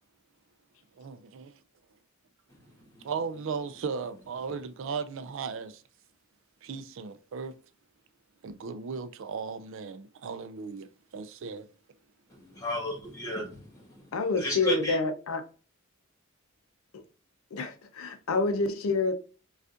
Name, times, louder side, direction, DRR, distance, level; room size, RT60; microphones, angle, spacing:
voice 1, 1.0-1.6 3.0-5.8 6.6-7.5 8.4-11.7, right 5 dB, 65° right, 0.4 m, -36 dB
voice 2, 12.3-14.1 14.3-15.0, equal, 15° left, 1.4 m, -34 dB
voice 3, 14.1-15.4 16.9-17.0 17.5-19.1, left 3 dB, 85° left, 0.5 m, -28 dB
5.0 x 2.4 x 2.4 m
head